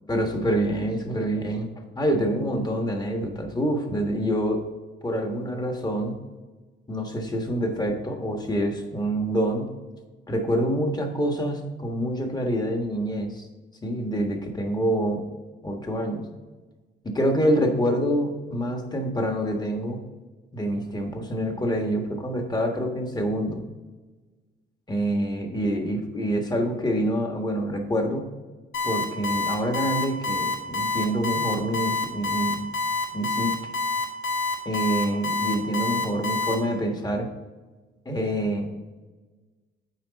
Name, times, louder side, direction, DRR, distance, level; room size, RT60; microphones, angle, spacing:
voice 1, 0.1-1.7 1.9-4.7 5.0-6.1 6.9-9.6 10.3-13.5 13.8-15.2 15.6-16.2 17.0-20.0 20.5-23.6 24.9-28.2 28.8-32.7 33.1-33.5 34.6-37.3 38.0-38.7, equal, 20° left, 3 dB, 1.5 m, -26 dB
Alarm, 28.7-36.5, left 4 dB, 70° left, 1.9 m, -26 dB
8.9 x 4.7 x 4.0 m, 1.3 s
cardioid pair, 90°, 20 cm